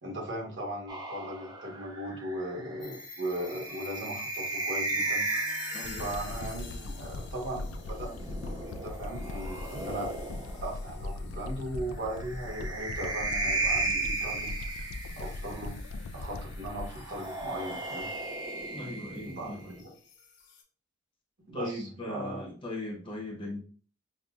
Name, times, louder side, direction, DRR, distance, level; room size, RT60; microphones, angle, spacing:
voice 1, 0.0-5.3 6.0-10.1 10.6-14.5 15.2-15.7 16.1-18.1 19.2-19.9 21.4-22.4, right 1 dB, 55° right, -1 dB, 1.1 m, -38 dB
sound 1, 0.9-6.4 7.8-10.8 12.1-15.6 16.9-19.8, right 2 dB, 20° right, 0.4 m, -35 dB
sound 2, 2.8-20.6, left 5 dB, 55° left, 0.7 m, -50 dB
voice 2, 5.7-6.0 18.7-19.7 21.5-23.6, left 1 dB, 25° left, 0 dB, 0.8 m, -38 dB
sound 3, 5.8-18.2 18.6-18.7, left 2 dB, 75° left, 0.3 m, -40 dB
5.4 x 2.1 x 2.4 m, 0.43 s
head